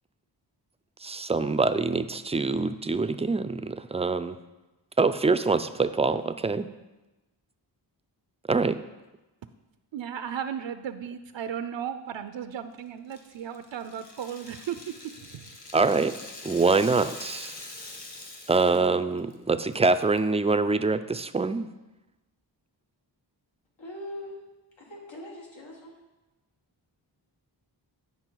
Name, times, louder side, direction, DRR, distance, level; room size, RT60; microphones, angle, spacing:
voice 1, 1.0-4.3 5.0-6.7 8.5-8.8 15.7-16.2 16.4-17.5 18.5-21.7, right 3 dB, 15° right, 11 dB, 0.3 m, -25 dB
voice 2, 9.9-15.5, right 8 dB, 80° right, 10 dB, 0.6 m, -35 dB
Rattle (instrument), 13.1-18.9 19.2-19.3 19.7-20.2, left 2 dB, 40° left, 1.4 m, -44 dB
voice 3, 23.8-24.4 24.8-25.9, left 1 dB, 90° left, -2 dB, 2.0 m, -41 dB
9.7 x 5.5 x 4.5 m, 1.1 s
wide cardioid pair, 70°, 44 cm